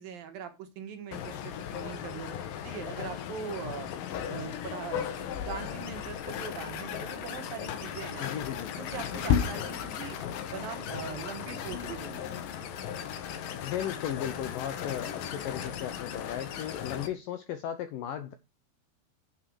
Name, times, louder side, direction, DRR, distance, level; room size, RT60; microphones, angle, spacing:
voice 1, 0.0-2.3 2.6-3.9 4.3-8.3 8.8-10.2 10.5-12.3, right 7 dB, 65° right, 2.9 m, -41 dB
sound 1, 1.1-17.1, left 9 dB, 65° left, 2.6 m, -35 dB
voice 2, 8.2-8.7 13.6-18.3, left 10 dB, 80° left, 2.0 m, -36 dB
9.3 x 7.7 x 4.7 m
omnidirectional pair, 4.9 m